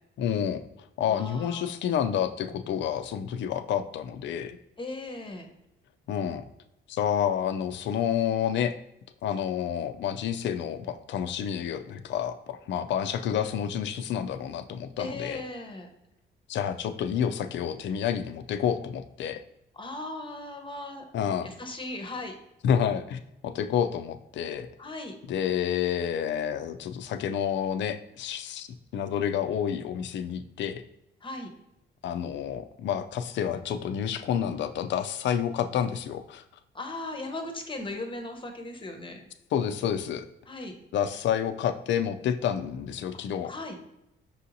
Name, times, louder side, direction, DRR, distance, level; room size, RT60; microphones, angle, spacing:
voice 1, 0.2-0.6 1.0-4.6 6.1-6.4 6.9-8.8 9.2-15.4 16.5-19.4 21.1-21.5 22.6-24.7 25.3-28.7 28.9-30.8 32.0-36.4 39.5-40.2 40.9-43.5, left 9 dB, 65° left, 10 dB, 0.4 m, -29 dB
voice 2, 1.1-1.7 4.8-5.5 15.0-15.9 19.7-21.0 21.4-22.3 24.8-25.1 31.2-31.5 36.7-39.2 40.5-40.8 43.4-43.8, left 2 dB, 25° left, 4 dB, 0.7 m, -37 dB
5.4 x 2.8 x 2.6 m, 0.85 s
cardioid pair, 90°, 20 cm